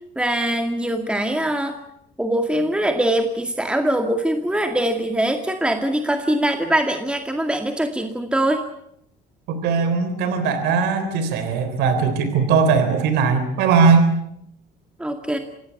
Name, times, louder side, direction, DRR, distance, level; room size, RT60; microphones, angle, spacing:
voice 1, 0.2-1.8 2.2-8.6 15.0-15.4, right 1 dB, 5° right, 5 dB, 2.2 m, -22 dB
voice 2, 9.5-14.1, right 5 dB, 90° right, 10 dB, 3.6 m, -19 dB
27.0 x 17.0 x 8.5 m, 0.75 s
cardioid pair, 110°, 17 cm